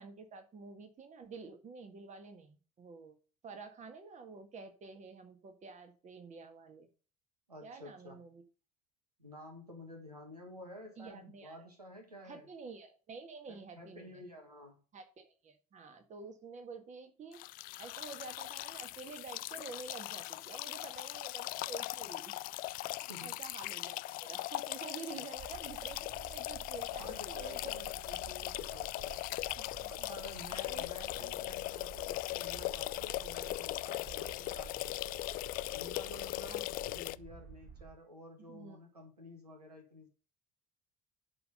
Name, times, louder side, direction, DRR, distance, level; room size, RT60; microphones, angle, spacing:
voice 1, 0.0-3.2 3.4-6.9 7.6-8.4 11.0-11.7 12.2-14.1 14.9-17.4 17.8-22.4 23.2-27.8 29.6-30.4 30.7-30.9 31.2-31.4 36.5-36.6 38.5-38.8, right 4 dB, 40° right, 7 dB, 1.8 m, -49 dB
voice 2, 7.5-8.3 9.2-12.5 13.5-14.8 23.1-23.4 25.1-25.3 27.0-29.5 29.9-35.2 35.7-40.1, left 1 dB, 85° right, 3 dB, 1.8 m, -51 dB
sound 1, 17.3-37.2, left 19 dB, 50° left, 0.4 m, -39 dB
sound 2, 25.4-37.9, right 6 dB, 55° right, 2.0 m, -52 dB
11.0 x 4.3 x 6.6 m, 0.37 s
figure-of-eight pair, 55°, 19 cm